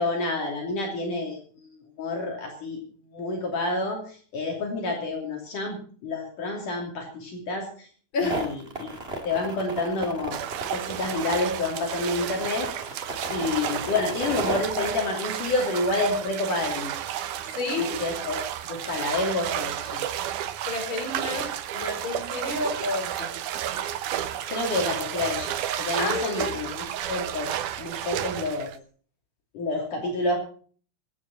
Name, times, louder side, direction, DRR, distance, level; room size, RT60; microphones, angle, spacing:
voice 1, 0.0-2.8 3.1-7.9 8.2-8.5 8.8-8.9 9.2-10.4 10.7-17.0 17.8-18.4 18.7-20.1 24.1-27.5 27.8-28.7 29.5-30.4, left 2 dB, 65° left, 1 dB, 4.4 m, -29 dB
voice 2, 8.1-8.4 17.4-17.9 20.7-23.4 26.0-26.6, left 3 dB, 35° left, 2 dB, 5.0 m, -30 dB
sound 1, 8.2-14.6, right 2 dB, 20° right, 1.9 m, -34 dB
sound 2, 10.3-28.8, right 11 dB, 70° right, 2.3 m, -32 dB
23.0 x 9.5 x 4.3 m, 0.43 s
omnidirectional pair, 4.0 m